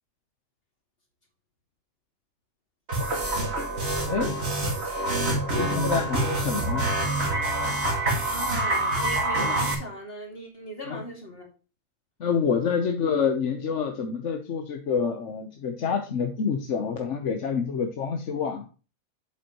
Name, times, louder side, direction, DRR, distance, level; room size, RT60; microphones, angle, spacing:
sound 1, 2.9-9.7, right 1 dB, 50° right, 2.2 m, -26 dB
voice 1, 5.2-6.9 10.8-11.0 12.2-18.7, left 6 dB, 60° left, 4 dB, 1.2 m, -27 dB
voice 2, 8.3-11.5, equal, 45° left, 0 dB, 2.9 m, -38 dB
8.1 x 7.9 x 3.0 m, 0.33 s
omnidirectional pair, 1.4 m